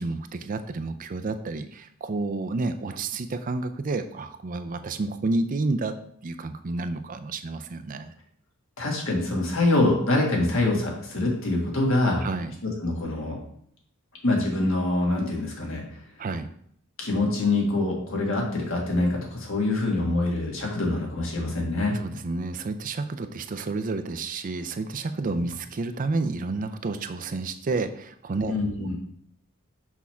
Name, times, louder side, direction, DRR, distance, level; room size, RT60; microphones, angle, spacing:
voice 1, 0.0-6.0 6.2-8.1 12.2-12.5 16.2-16.5 21.9-28.5, right 3 dB, 40° right, 9 dB, 0.4 m, -30 dB
voice 2, 8.8-12.2 12.6-13.4 14.2-15.8 17.0-22.0 28.5-28.9, left 2 dB, 65° left, -1 dB, 1.9 m, -25 dB
6.2 x 3.6 x 5.6 m, 0.66 s
head